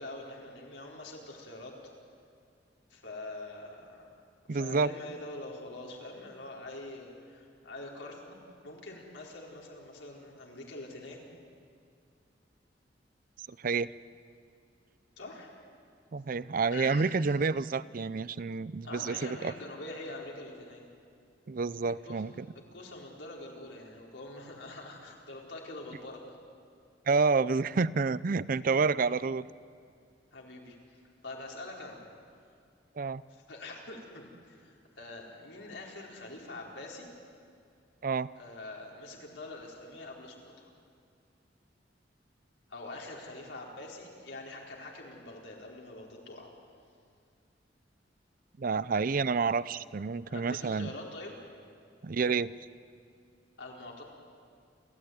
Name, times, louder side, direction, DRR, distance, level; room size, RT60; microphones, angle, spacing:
voice 1, 0.0-1.7 2.9-4.1 4.5-8.2 8.6-11.2 15.2-15.5 16.7-17.1 18.8-20.8 22.0-22.2 22.7-26.4 30.3-31.0 31.2-32.0 33.3-37.1 38.4-40.7 42.7-46.5 50.3-51.4 53.6-54.0, left 2 dB, 90° left, -2 dB, 4.6 m, -44 dB
voice 2, 4.5-4.9 13.6-13.9 16.1-19.5 21.5-22.5 27.1-29.5 33.0-33.2 38.0-38.3 48.6-50.9 52.0-52.5, right 4 dB, 50° right, 18 dB, 0.5 m, -29 dB
29.5 x 14.0 x 9.5 m, 2.3 s
head